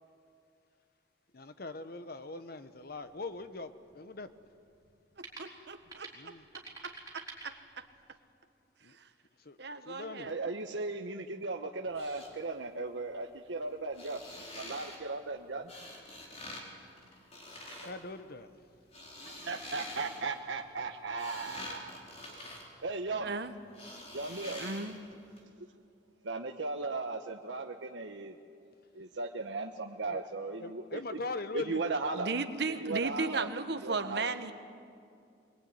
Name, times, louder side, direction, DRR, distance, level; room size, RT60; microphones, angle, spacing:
voice 1, 1.3-4.3 6.1-6.4 8.8-9.0 9.4-9.6 9.8-10.3 17.8-18.6 30.1-30.2 30.6-31.8, left 3 dB, 55° left, 11 dB, 1.1 m, -41 dB
sound 1, 2.8-8.1, right 3 dB, 20° right, 4.9 m, -51 dB
voice 2, 5.4-6.3 6.8-7.8 9.0-9.1 9.6-10.3 23.2-23.5 24.6-25.0 32.1-34.5, right 3 dB, 65° right, 9 dB, 1.3 m, -36 dB
voice 3, 10.3-14.2 14.5-15.6 19.2-21.9 22.2-22.4 22.8-23.3 24.1-24.6 25.6-25.7 26.2-28.4 28.9-31.0 31.5-32.3 32.8-33.5 33.8-34.2, right 3 dB, 85° right, 4 dB, 1.0 m, -37 dB
sound 2, 11.8-12.3 13.8-15.0 15.7-16.6 16.9-17.9 18.7-20.4 20.9-23.3 23.7-25.1 25.4-25.5, left 1 dB, 35° left, 4.4 m, -46 dB
22.5 x 22.0 x 9.6 m, 2.4 s
head